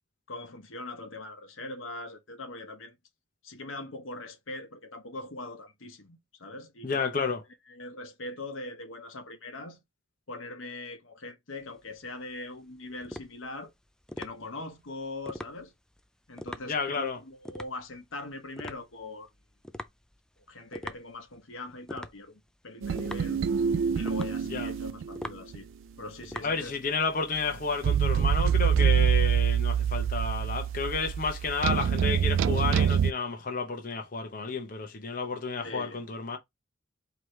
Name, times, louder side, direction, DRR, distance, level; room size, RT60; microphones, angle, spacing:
voice 1, 0.3-3.0 3.4-7.1 7.7-9.8 10.3-13.7 14.2-15.7 16.3-19.3 20.5-23.4 23.9-25.7 26.0-26.8 35.6-36.0, left 2 dB, 80° left, 1.1 m, -41 dB
voice 2, 6.8-7.4 16.6-17.2 24.5-24.7 26.4-36.4, left 5 dB, 45° left, 0.8 m, -31 dB
sound 1, 11.6-27.2, left 1 dB, 5° left, 0.3 m, -44 dB
sound 2, 22.8-25.3 25.5-25.6 27.8-33.1, right 8 dB, 70° right, 0.3 m, -25 dB
4.7 x 3.0 x 3.2 m
head